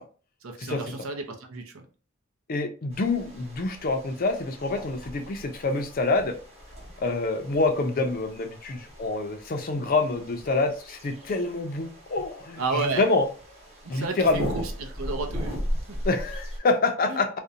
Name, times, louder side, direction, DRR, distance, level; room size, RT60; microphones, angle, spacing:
voice 1, 0.4-1.9 12.6-13.1 13.8-16.0 17.1-17.2, right 3 dB, 85° right, 4 dB, 0.6 m, -32 dB
voice 2, 2.5-6.4 7.0-13.3 13.9-14.5 16.0-17.3, left 3 dB, 45° left, 6 dB, 0.4 m, -26 dB
sound 1, 2.9-16.6, equal, 30° right, 0.9 m, -38 dB
2.5 x 2.1 x 2.7 m, 0.38 s
head